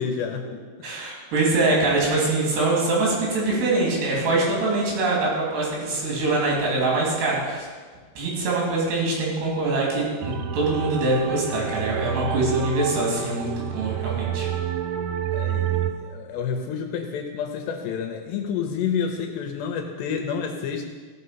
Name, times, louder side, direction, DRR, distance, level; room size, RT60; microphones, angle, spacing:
voice 1, 0.0-0.9 15.3-20.8, left 6 dB, 75° left, 4 dB, 2.8 m, -29 dB
voice 2, 0.8-7.7 8.2-14.5, right 2 dB, 65° right, -3 dB, 4.7 m, -23 dB
sound 1, 10.2-15.9, right 9 dB, 85° right, 3.1 m, -28 dB
16.0 x 5.9 x 5.7 m, 1.5 s
omnidirectional pair, 5.3 m